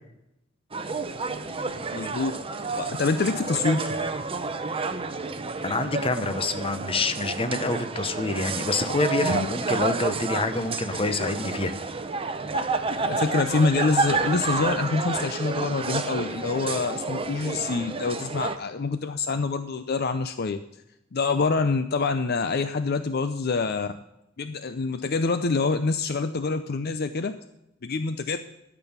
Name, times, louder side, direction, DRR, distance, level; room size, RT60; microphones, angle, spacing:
sound 1, 0.7-18.6, right 4 dB, 30° right, 0.7 m, -30 dB
voice 1, 1.9-2.4 2.7-4.0 9.2-9.5 13.0-20.6 21.1-23.9 24.4-27.4 27.8-28.4, left 4 dB, 50° left, 10 dB, 0.6 m, -26 dB
voice 2, 5.6-12.0, left 3 dB, 30° left, 10 dB, 0.9 m, -27 dB
12.0 x 6.2 x 7.2 m, 0.86 s
head